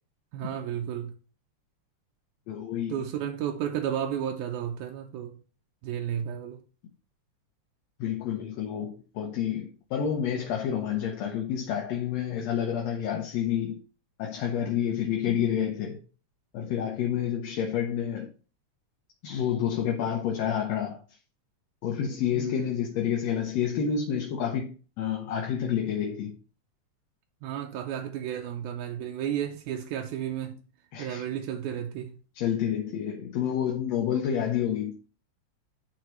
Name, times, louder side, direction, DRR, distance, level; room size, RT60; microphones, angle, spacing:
voice 1, 0.3-1.1 2.9-5.3 5.8-6.6 22.3-22.7 27.4-30.6 31.0-32.1, right 9 dB, 90° right, 2.1 m, -32 dB
voice 2, 2.5-3.0 8.0-13.8 14.2-16.0 16.5-18.3 19.2-21.2 21.8-26.4 30.9-31.2 32.3-35.0, left 9 dB, 70° left, 1.9 m, -29 dB
11.0 x 3.8 x 3.0 m
omnidirectional pair, 3.3 m